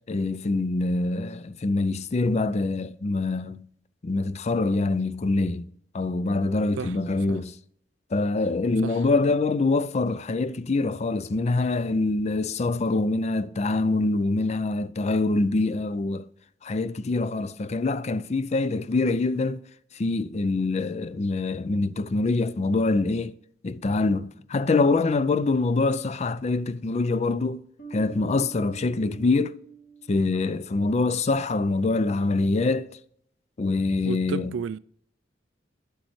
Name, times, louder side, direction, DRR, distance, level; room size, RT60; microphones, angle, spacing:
voice 1, 0.1-3.7 4.0-5.7 5.9-7.5 8.1-16.3 16.6-19.6 19.9-23.4 23.6-27.6 27.9-29.6 30.1-32.9 33.6-34.5, left 3 dB, 35° left, 0.4 m, -25 dB
voice 2, 8.8-9.3 34.1-34.8, right 6 dB, 85° right, 0.3 m, -33 dB
sound 1, 27.8-31.1, right 6 dB, 55° left, 2.4 m, -46 dB
11.0 x 8.2 x 3.1 m
head